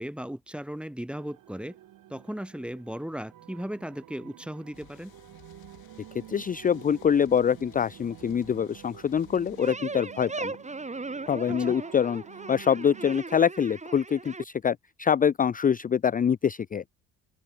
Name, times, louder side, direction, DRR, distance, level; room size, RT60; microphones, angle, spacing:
voice 1, 0.0-1.8 2.1-5.1 11.5-11.8, equal, 5° right, 0.9 m, -36 dB
sound 1, 1.2-13.2, right 13 dB, 60° right, 1.6 m, -50 dB
sound 2, 4.7-9.7, left 15 dB, 70° left, 3.3 m, -57 dB
voice 2, 6.3-10.5 11.3-12.2 12.5-16.8, left 8 dB, 25° left, 0.5 m, -25 dB
sound 3, 9.6-14.4, right 3 dB, 20° right, 2.8 m, -38 dB
open air
supercardioid pair, 80°, 38 cm